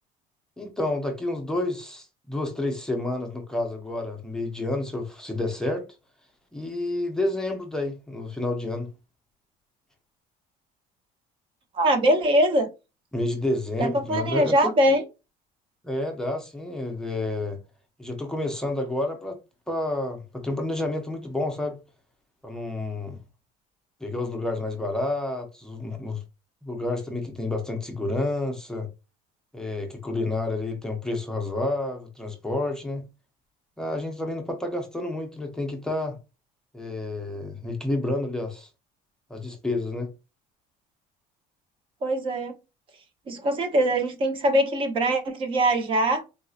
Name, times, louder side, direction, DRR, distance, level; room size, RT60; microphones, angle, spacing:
voice 1, 0.6-5.9 6.5-8.9 13.1-14.7 15.8-17.6 18.0-19.4 19.7-21.8 22.4-23.2 24.0-26.2 26.6-28.9 29.5-33.0 33.8-36.2 36.7-38.7 39.3-40.1, left 2 dB, 5° left, 0.6 m, -29 dB
voice 2, 11.7-12.7 13.8-15.0 42.0-42.5 43.3-46.2, right 1 dB, 35° right, 0.8 m, -22 dB
4.0 x 2.6 x 2.4 m
cardioid pair, 165°, 16 cm